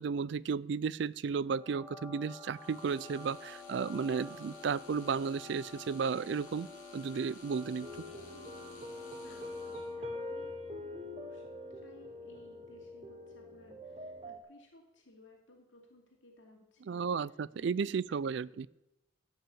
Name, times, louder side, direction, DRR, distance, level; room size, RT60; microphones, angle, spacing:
voice 1, 0.0-7.9 16.9-18.7, right 5 dB, 55° right, 21 dB, 0.3 m, -34 dB
sound 1, 1.4-10.2, left 3 dB, 10° left, 4.0 m, -51 dB
sound 2, 2.5-10.0, left 4 dB, 40° left, 2.5 m, -54 dB
sound 3, 7.8-14.4, left 2 dB, 30° right, 1.0 m, -44 dB
voice 2, 9.2-11.4 11.7-18.0 18.4-18.5, left 1 dB, 65° left, 0 dB, 2.5 m, -59 dB
14.5 x 5.9 x 8.5 m, 0.89 s
head